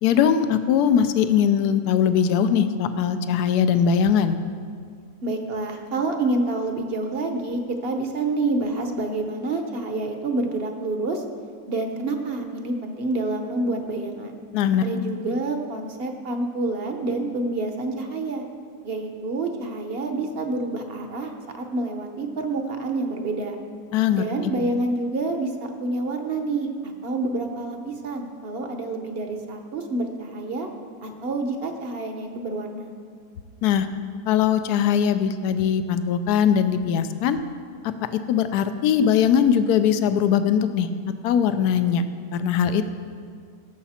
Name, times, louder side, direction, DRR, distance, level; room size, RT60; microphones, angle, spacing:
voice 1, 0.0-4.4 14.5-14.8 23.9-24.2 24.6-24.7 33.6-33.9 34.3-37.4 38.3-40.9 41.2-42.0 42.3-42.8, left 8 dB, 75° left, 10 dB, 1.1 m, -20 dB
voice 2, 5.2-11.2 11.7-14.4 14.8-18.4 18.8-23.6 24.1-25.5 25.8-30.7 31.0-33.0, right 2 dB, 45° right, 5 dB, 0.9 m, -28 dB
17.5 x 7.0 x 4.3 m, 2.2 s
omnidirectional pair, 1.8 m